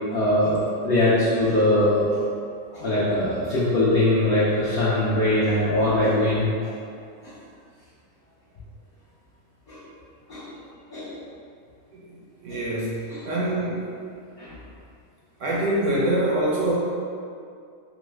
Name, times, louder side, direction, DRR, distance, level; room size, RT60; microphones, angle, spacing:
voice 1, 0.1-2.2 2.7-6.7 7.2-7.3 9.7-9.8 10.3-10.5 10.9-11.2 12.5-12.6 13.1-13.2 14.4-14.6, left 1 dB, 60° left, -10 dB, 0.6 m, -22 dB
voice 2, 11.9-13.9 15.4-16.7, right 1 dB, 70° right, -6 dB, 0.8 m, -25 dB
3.0 x 2.1 x 3.2 m, 2.3 s
omnidirectional pair, 1.6 m